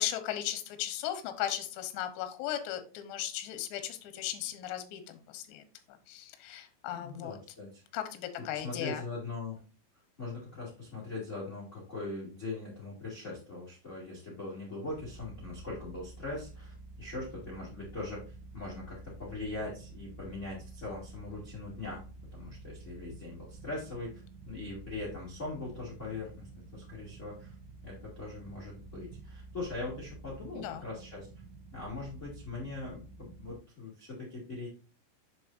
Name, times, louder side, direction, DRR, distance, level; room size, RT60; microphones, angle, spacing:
voice 1, 0.0-5.6 6.1-7.4 7.9-9.0 30.5-30.8, left 12 dB, 75° left, 8 dB, 2.9 m, -36 dB
voice 2, 6.9-7.8 8.5-9.6 10.2-22.0 22.3-27.5 27.8-31.3 31.7-34.7, left 2 dB, 40° left, -5 dB, 1.0 m, -41 dB
sound 1, 14.9-33.5, right 3 dB, 85° right, 3.4 m, -50 dB
7.9 x 6.4 x 2.6 m, 0.37 s
omnidirectional pair, 5.8 m